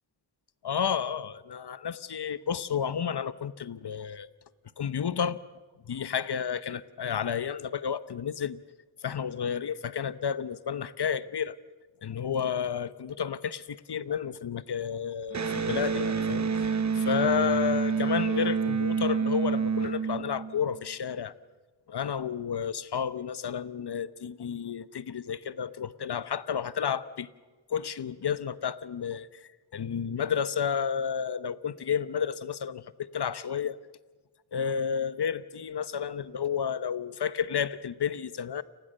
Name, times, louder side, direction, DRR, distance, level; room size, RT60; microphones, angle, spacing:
voice 1, 0.6-4.3 4.8-5.4 5.9-8.6 9.0-11.5 12.0-21.3 21.9-27.3 27.7-33.8 34.5-38.6, left 7 dB, 55° left, 1.0 m, -31 dB
Electric guitar, 15.3-20.8, right 6 dB, 35° right, 1.0 m, -28 dB
29.5 x 20.0 x 6.7 m
cardioid pair, 75°, 49 cm